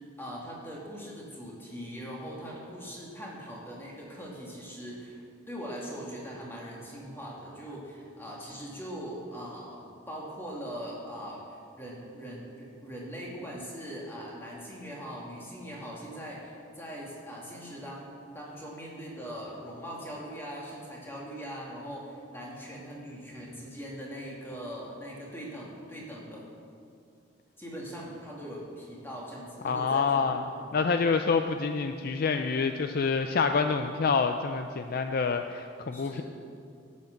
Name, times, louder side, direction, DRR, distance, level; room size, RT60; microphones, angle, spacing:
voice 1, 0.2-5.2 5.5-26.4 27.6-30.7 35.8-36.2, equal, 10° left, -4 dB, 2.2 m, -41 dB
voice 2, 29.6-30.4 30.7-36.2, left 5 dB, 45° left, 7 dB, 0.4 m, -27 dB
12.0 x 8.4 x 6.5 m, 2.5 s
head